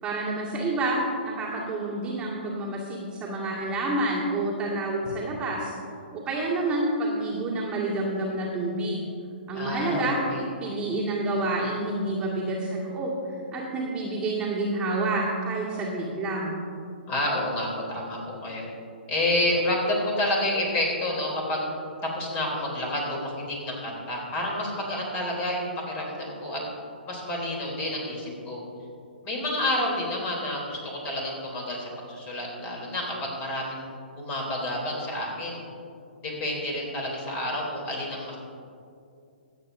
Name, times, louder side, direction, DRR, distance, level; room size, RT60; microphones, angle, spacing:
voice 1, 0.0-5.7 6.1-9.0 9.5-10.2 10.6-16.5, right 2 dB, 15° right, -6 dB, 1.9 m, -28 dB
voice 2, 9.5-10.4 17.1-18.7 19.1-21.6 22.0-26.6 27.0-28.6 29.2-33.9 34.2-35.6 36.2-38.4, left 1 dB, 25° left, -2 dB, 3.1 m, -29 dB
24.0 x 8.1 x 2.6 m, 2.5 s
figure-of-eight pair, 130°, 6 cm